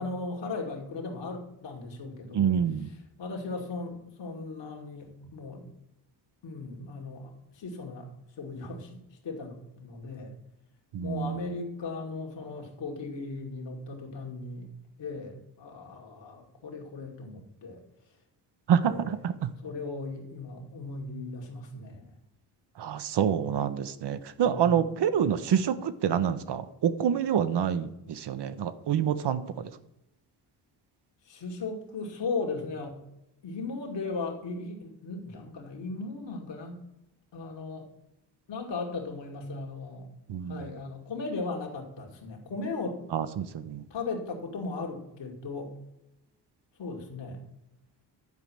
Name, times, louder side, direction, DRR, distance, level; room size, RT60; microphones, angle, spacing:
voice 1, 0.0-2.5 3.2-5.7 6.4-8.1 8.4-10.3 11.0-14.7 15.0-17.8 18.8-19.1 19.6-22.1 24.4-24.7 31.3-33.0 33.4-36.8 37.3-37.9 38.5-40.1 40.5-43.0 43.9-45.7 46.8-47.4, left 3 dB, 60° left, 1 dB, 2.4 m, -37 dB
voice 2, 2.3-2.9 10.9-11.4 18.7-19.5 22.8-29.7 40.3-40.7 43.1-43.8, right 8 dB, 55° right, 12 dB, 1.0 m, -27 dB
10.5 x 5.1 x 7.6 m, 0.87 s
supercardioid pair, 55°, 49 cm